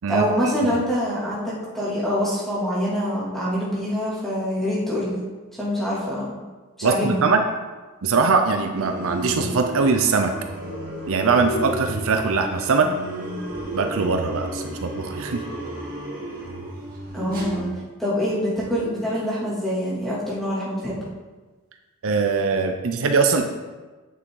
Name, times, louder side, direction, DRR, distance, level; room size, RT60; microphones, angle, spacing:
voice 1, 0.1-5.2 5.6-6.4 6.8-7.2 17.1-17.7 18.0-21.0, equal, ahead, -8 dB, 2.6 m, -25 dB
voice 2, 6.8-7.4 8.0-10.3 11.1-12.9 13.7-15.4 22.0-23.5, right 4 dB, 65° right, 6 dB, 0.6 m, -21 dB
sound 1, 8.8-17.7, right 1 dB, 40° right, 2.0 m, -32 dB
9.2 x 6.2 x 3.9 m, 1.3 s
head